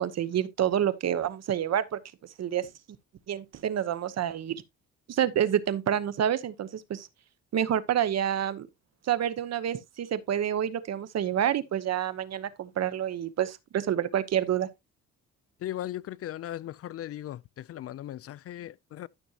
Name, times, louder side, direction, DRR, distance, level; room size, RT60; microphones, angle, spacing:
voice 1, 0.0-2.0 2.4-2.7 3.3-4.6 5.1-7.1 7.5-8.7 9.1-14.7, right 10 dB, 60° right, 1.0 m, -28 dB
voice 2, 15.6-19.1, left 12 dB, 50° left, 0.4 m, -38 dB
12.5 x 6.2 x 2.8 m
cardioid pair, 90°, 30 cm